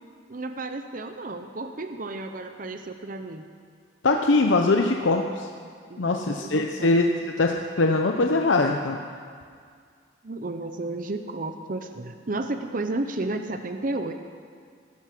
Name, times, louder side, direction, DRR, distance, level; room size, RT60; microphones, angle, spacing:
voice 1, 0.3-3.5 5.9-6.9 10.2-14.1, right 2 dB, 45° right, 7 dB, 0.7 m, -32 dB
voice 2, 4.0-5.5 6.0-7.1 7.4-9.0, left 3 dB, 80° left, 3 dB, 0.8 m, -22 dB
17.0 x 12.0 x 6.1 m, 2.1 s
head